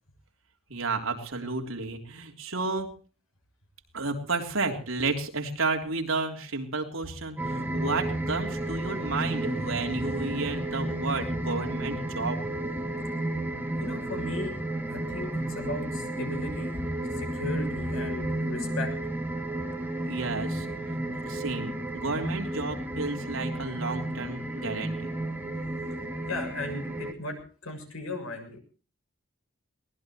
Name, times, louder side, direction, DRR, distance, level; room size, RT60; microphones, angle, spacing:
voice 1, 0.7-2.9 3.9-12.4 20.0-20.7 21.2-25.1, right 3 dB, 70° right, 3 dB, 3.6 m, -32 dB
sound 1, 7.4-27.1, right 1 dB, 10° right, 2.3 m, -32 dB
voice 2, 13.8-14.5 14.9-16.7 17.1-18.9 25.9-26.0 26.3-27.4 27.6-28.6, left 2 dB, 80° left, 4 dB, 7.0 m, -36 dB
23.0 x 19.0 x 3.1 m, 0.40 s
head